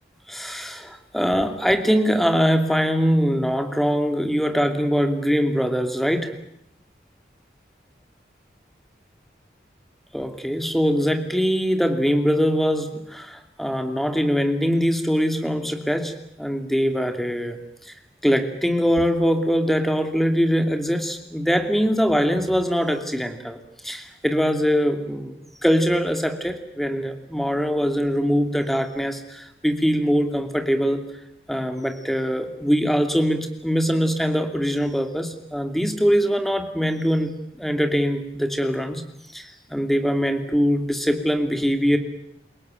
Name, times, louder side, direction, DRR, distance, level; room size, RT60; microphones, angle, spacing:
voice 1, 0.3-6.3 10.1-17.9 18.2-23.6 23.8-31.0 31.5-39.0 39.3-42.0, equal, ahead, 6 dB, 2.6 m, -22 dB
29.0 x 18.0 x 9.1 m, 0.76 s
head